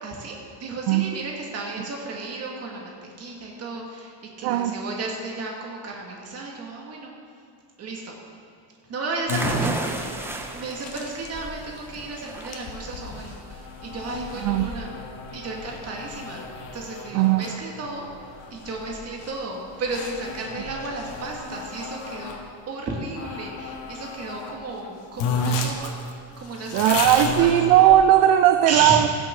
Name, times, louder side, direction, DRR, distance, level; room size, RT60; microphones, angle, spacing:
voice 1, 0.0-7.1 7.8-8.2 8.9-14.9 15.3-16.4 16.7-22.4 22.7-26.0 26.4-27.5 28.7-29.0, right 3 dB, 35° right, -1 dB, 1.9 m, -33 dB
voice 2, 4.4-4.8 14.4-14.7 17.1-17.5 26.7-29.1, right 12 dB, 60° right, 9 dB, 0.5 m, -18 dB
sound 1, 9.3-22.4 23.1-24.6 24.8-24.9 25.2-28.3, left 3 dB, 75° left, 1.6 m, -33 dB
sound 2, 9.3-16.8, right 1 dB, 5° right, 0.4 m, -34 dB
16.0 x 7.7 x 3.7 m, 2.5 s
cardioid pair, 160°, 44 cm